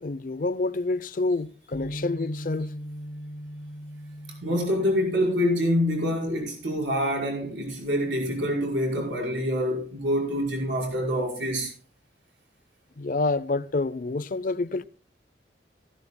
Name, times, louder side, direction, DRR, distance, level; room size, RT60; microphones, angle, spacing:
voice 1, 0.0-2.8 13.0-14.8, left 3 dB, 50° left, 0.5 m, -28 dB
Bass guitar, 1.7-8.0, equal, 65° left, 0.9 m, -41 dB
voice 2, 4.4-11.7, equal, 75° right, 5.5 m, -26 dB
15.5 x 15.0 x 2.3 m
head